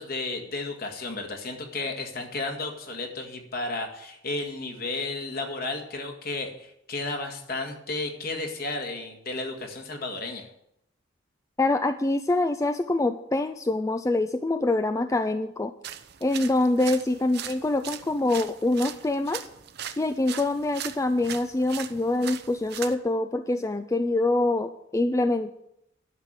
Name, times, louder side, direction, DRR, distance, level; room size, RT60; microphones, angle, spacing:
voice 1, 0.0-10.5, left 2 dB, 55° left, 4 dB, 2.0 m, -33 dB
voice 2, 11.6-15.7 16.2-19.4 20.0-25.5, left 2 dB, 15° left, 9 dB, 0.4 m, -25 dB
sound 1, 15.8-23.0, right 10 dB, 60° right, 0.8 m, -40 dB
11.0 x 6.5 x 9.0 m, 0.78 s
head